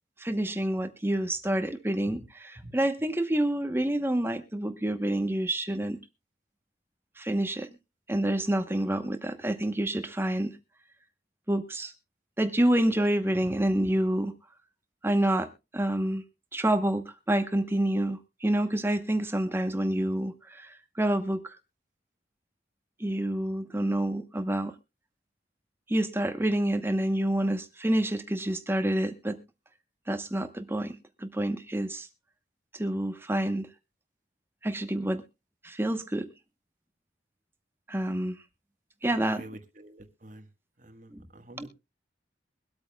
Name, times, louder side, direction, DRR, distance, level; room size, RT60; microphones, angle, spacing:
voice 1, 0.2-6.0 7.2-7.7 8.1-10.6 11.5-11.9 12.4-14.3 15.0-16.2 16.5-21.6 23.0-24.7 25.9-29.4 30.1-32.1 32.7-33.7 34.6-35.2 35.6-36.3 37.9-38.4 39.0-39.4 41.1-41.3 41.6-41.7, right 1 dB, 10° right, 0.9 m, -28 dB
voice 2, 39.0-40.5 40.8-41.7, right 1 dB, 45° right, 1.4 m, -48 dB
23.0 x 8.6 x 2.3 m
head